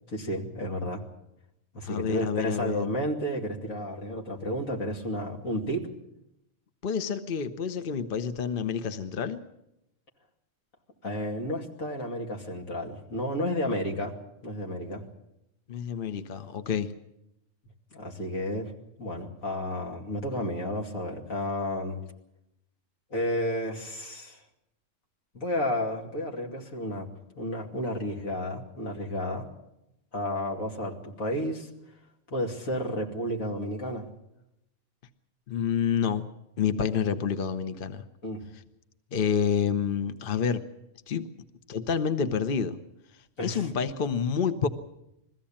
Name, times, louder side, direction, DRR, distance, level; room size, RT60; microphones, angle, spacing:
voice 1, 0.1-1.0 1.7-5.9 11.0-14.1 14.4-15.0 17.9-18.7 19.0-22.0 23.1-24.4 25.3-27.1 27.4-29.5 30.1-31.7 32.3-34.0 38.2-38.4 43.4-43.7, equal, 80° left, 1 dB, 3.0 m, -32 dB
voice 2, 1.8-2.9 6.8-9.4 15.7-16.9 35.5-36.3 36.6-38.0 39.1-40.6 41.1-41.3 41.7-42.8 43.4-44.7, left 7 dB, 45° left, 10 dB, 1.0 m, -28 dB
21.5 x 15.0 x 8.7 m, 0.87 s
omnidirectional pair, 1.4 m